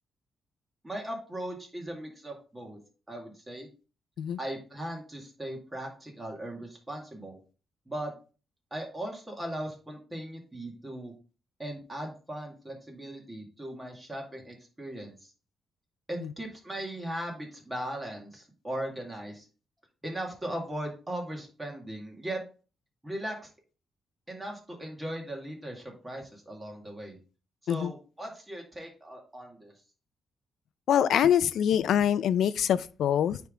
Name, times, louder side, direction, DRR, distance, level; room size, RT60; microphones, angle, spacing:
voice 1, 0.8-2.8 3.1-3.7 4.4-7.4 7.9-8.1 8.7-11.1 11.6-15.3 16.1-19.5 20.0-22.4 23.0-23.5 24.3-27.2 27.6-29.7, right 1 dB, 10° right, 2.1 m, -38 dB
voice 2, 30.9-33.4, left 9 dB, 75° left, 0.4 m, -24 dB
9.4 x 3.5 x 3.7 m
cardioid pair, 125°, 0 cm